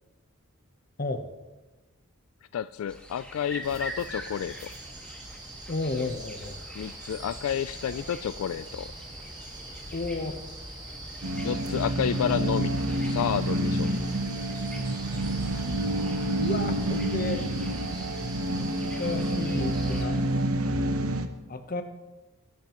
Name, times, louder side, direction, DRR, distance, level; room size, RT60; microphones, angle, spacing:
voice 1, 2.5-4.7 6.8-8.9 11.4-12.7 13.1-13.9, left 8 dB, 80° left, 14 dB, 0.3 m, -30 dB
sound 1, 2.9-20.4, equal, 5° left, 1.7 m, -47 dB
sound 2, 3.6-20.0, right 1 dB, 20° right, 1.5 m, -42 dB
voice 2, 5.7-6.6 9.9-10.4 16.4-17.4 18.5-20.2 21.5-21.8, left 2 dB, 40° left, 7 dB, 0.9 m, -32 dB
sound 3, 11.2-21.3, right 1 dB, 80° right, 0.9 m, -28 dB
20.5 x 10.5 x 3.0 m, 1.1 s
head